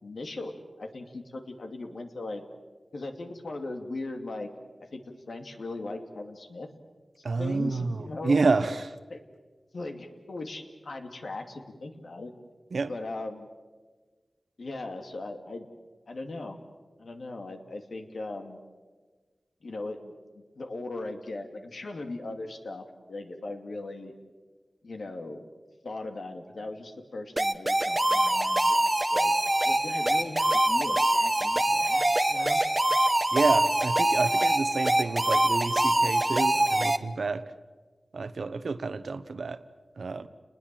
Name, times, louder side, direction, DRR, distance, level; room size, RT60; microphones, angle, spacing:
voice 1, 0.0-2.4 2.9-4.5 4.9-6.7 7.3-8.4 9.1-9.2 9.7-12.3 12.9-13.5 14.6-15.7 16.1-16.6 17.0-18.6 19.6-24.1 24.8-25.5 25.8-29.3 29.6-32.6, left 2 dB, 75° left, 5 dB, 2.6 m, -39 dB
voice 2, 7.2-9.0 12.7-12.9 33.3-37.4 38.1-39.6 40.0-40.3, right 3 dB, 75° right, 12 dB, 1.2 m, -29 dB
sound 1, 27.4-37.0, right 1 dB, 20° right, 1.0 m, -24 dB
30.0 x 20.5 x 7.7 m, 1.4 s
wide cardioid pair, 80°, 0 cm